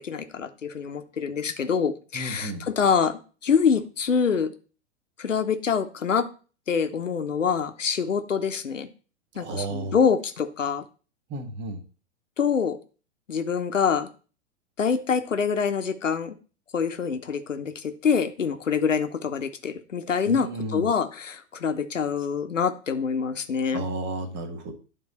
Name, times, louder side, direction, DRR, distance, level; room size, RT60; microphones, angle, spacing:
voice 1, 0.0-4.5 5.2-6.3 6.7-8.9 9.4-10.8 12.4-12.8 13.3-14.1 14.8-16.3 16.7-23.9, left 6 dB, 90° left, 9 dB, 0.9 m, -25 dB
voice 2, 2.1-2.7 9.4-10.0 11.3-11.8 20.3-20.9 23.7-24.7, right 2 dB, 30° right, 7 dB, 1.3 m, -32 dB
9.7 x 3.8 x 4.1 m, 0.37 s
hypercardioid pair, 110°, 37 cm